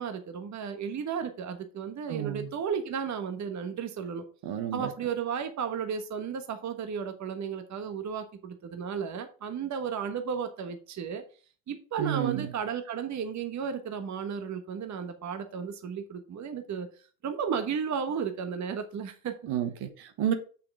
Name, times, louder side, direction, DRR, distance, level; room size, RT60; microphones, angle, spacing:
voice 1, 0.0-4.2 4.7-11.2 11.7-16.9 17.2-19.3, right 7 dB, 40° right, 8 dB, 1.2 m, -34 dB
voice 2, 2.1-2.5 4.4-4.9 12.0-12.5 19.5-20.3, right 10 dB, 60° right, 8 dB, 1.4 m, -30 dB
6.5 x 5.7 x 4.7 m, 0.39 s
supercardioid pair, 80°, 45 cm